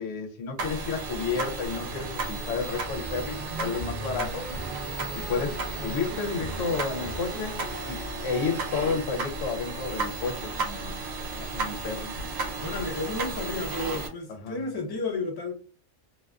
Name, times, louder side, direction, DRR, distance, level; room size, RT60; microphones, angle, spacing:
voice 1, 0.0-4.4 5.1-7.6 7.9-8.0 8.2-10.9 11.4-12.1 14.4-14.6, left 5 dB, 75° left, 0.9 m, -31 dB
sound 1, 0.6-14.1, right 3 dB, 75° right, 1.0 m, -34 dB
sound 2, 1.6-8.9, right 1 dB, 45° right, 0.6 m, -39 dB
voice 2, 12.6-15.5, left 3 dB, 35° left, 0.3 m, -32 dB
2.5 x 2.3 x 2.2 m
omnidirectional pair, 1.4 m